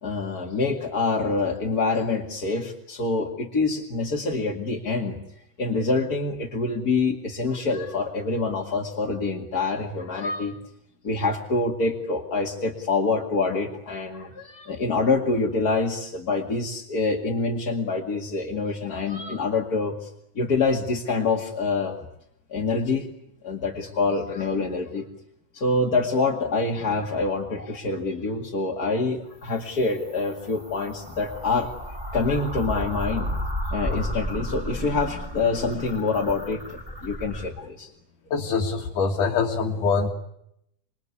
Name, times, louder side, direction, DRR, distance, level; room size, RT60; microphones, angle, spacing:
voice 1, 0.0-5.2 5.6-10.6 11.0-20.1 20.3-22.0 22.5-23.1 23.4-25.1 25.5-31.7 32.1-33.4 33.7-37.9, left 3 dB, 30° left, 0 dB, 2.3 m, -26 dB
sound 1, 29.3-37.5, equal, 15° right, 4.7 m, -33 dB
voice 2, 38.3-40.1, left 5 dB, 80° left, 0 dB, 3.5 m, -24 dB
27.0 x 22.5 x 9.7 m, 0.78 s
omnidirectional pair, 3.6 m